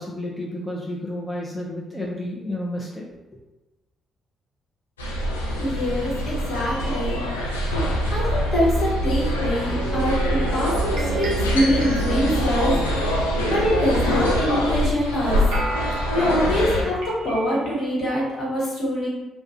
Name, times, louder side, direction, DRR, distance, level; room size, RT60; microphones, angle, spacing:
voice 1, 0.0-3.1, left 1 dB, 15° left, -3 dB, 0.5 m, -31 dB
sound 1, 5.0-16.8, equal, 90° left, 0.3 m, -24 dB
voice 2, 5.6-7.2 7.7-7.8 8.1-12.7 13.4-15.4 15.9-19.1, equal, 60° left, -6 dB, 1.0 m, -24 dB
sound 2, 9.7-17.9, right 3 dB, 70° right, 0.5 m, -33 dB
2.3 x 2.2 x 2.6 m, 1.0 s
hypercardioid pair, 40°, 0 cm